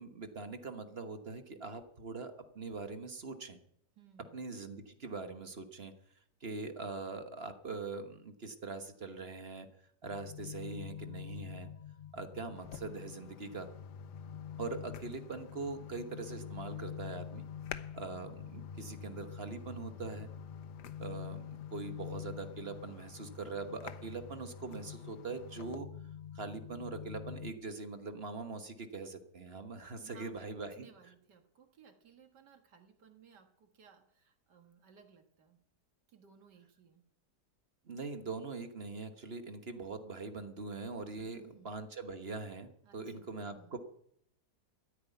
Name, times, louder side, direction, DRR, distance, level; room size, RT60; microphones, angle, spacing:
voice 1, 0.0-3.6 4.3-5.9 6.4-9.7 10.0-11.7 12.1-13.7 14.6-17.4 17.9-20.3 21.0-25.9 26.3-30.9 37.9-43.8, right 4 dB, 40° right, 8 dB, 1.3 m, -42 dB
voice 2, 4.0-4.5 30.0-35.6 36.1-37.1 41.2-41.7 42.8-43.8, right 7 dB, 85° right, 6 dB, 2.3 m, -60 dB
sound 1, 10.0-27.5, left 8 dB, 55° left, 0.7 m, -46 dB
sound 2, 12.6-25.8, left 10 dB, 80° left, 1.4 m, -54 dB
13.5 x 9.6 x 9.2 m, 0.71 s
omnidirectional pair, 1.8 m